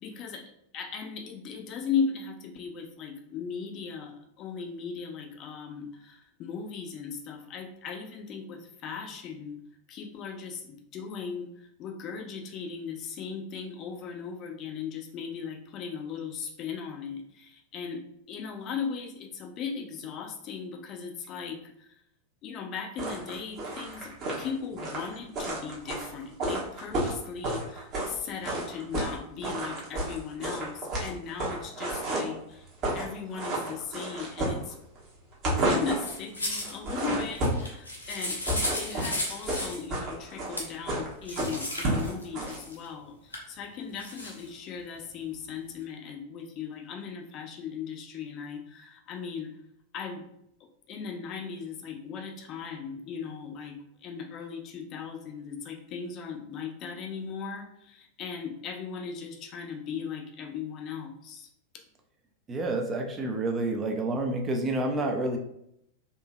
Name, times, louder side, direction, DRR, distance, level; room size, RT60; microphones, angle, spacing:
voice 1, 0.0-9.6 9.9-21.9 22.4-32.7 32.9-34.8 35.6-49.5 49.9-50.2 50.9-61.5, left 6 dB, 35° left, 3 dB, 0.5 m, -37 dB
sound 1, 23.0-28.2 28.4-29.1 29.4-32.4 32.7-33.1 33.3-35.0 35.3-36.1 36.6-37.7 38.2-42.6, right 1 dB, 40° right, 1.0 m, -31 dB
sound 2, 36.0-36.8 37.3-39.8 40.6-40.7 41.2-42.9 43.3-43.4 44.0-44.5, left 1 dB, 80° left, 0.7 m, -34 dB
voice 2, 62.5-65.4, right 2 dB, 20° right, 3 dB, 0.4 m, -29 dB
3.7 x 2.7 x 2.2 m, 0.75 s
figure-of-eight pair, 90°, 0 cm